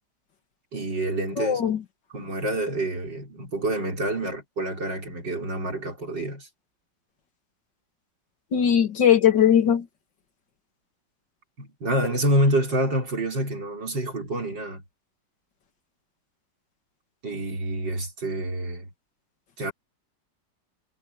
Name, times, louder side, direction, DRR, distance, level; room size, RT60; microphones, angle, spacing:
voice 1, 0.7-1.7 2.1-6.5 11.6-14.8 17.2-18.9 19.6-19.7, right 1 dB, 75° right, 5.8 m, -27 dB
voice 2, 1.4-1.8 8.5-9.9, left 9 dB, 75° left, 2.7 m, -19 dB
omnidirectional pair, 2.0 m